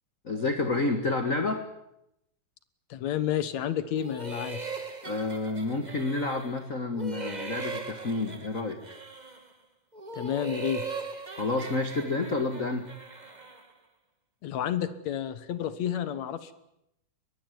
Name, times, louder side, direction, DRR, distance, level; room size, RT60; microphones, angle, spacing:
voice 1, 0.2-1.6 5.0-8.8 11.3-12.9, left 3 dB, 40° left, 7 dB, 1.1 m, -29 dB
voice 2, 2.9-4.6 10.1-10.8 14.4-16.5, left 10 dB, 60° left, 14 dB, 2.2 m, -30 dB
sound 1, 4.0-6.6 6.9-9.5 9.9-13.7, right 4 dB, 20° right, 1.0 m, -39 dB
22.5 x 21.0 x 9.4 m, 0.81 s
omnidirectional pair, 4.2 m